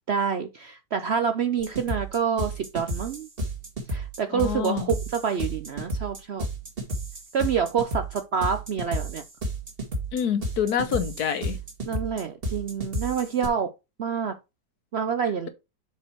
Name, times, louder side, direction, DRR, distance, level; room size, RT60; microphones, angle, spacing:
voice 1, 0.1-3.3 3.9-6.5 7.3-9.2 11.9-13.7 14.0-14.3 14.9-15.5, right 7 dB, 65° right, 0.6 m, -27 dB
sound 1, 1.6-13.5, right 1 dB, 35° right, 1.9 m, -32 dB
voice 2, 4.3-4.9 10.1-11.6, left 8 dB, 70° left, 1.4 m, -27 dB
7.0 x 4.5 x 4.5 m
omnidirectional pair, 1.8 m